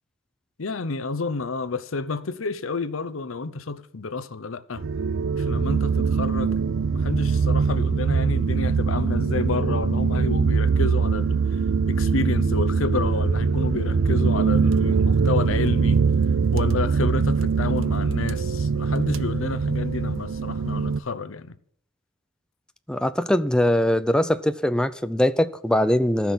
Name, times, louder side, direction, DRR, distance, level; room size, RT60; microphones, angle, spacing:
voice 1, 0.6-4.9 5.4-6.6 6.9-11.4 11.9-16.0 16.5-21.6, left 4 dB, 75° left, 0.8 m, -30 dB
sound 1, 4.8-21.0, right 5 dB, 70° right, 0.5 m, -22 dB
voice 2, 22.9-26.3, left 1 dB, 5° left, 0.5 m, -22 dB
14.0 x 6.1 x 8.5 m
head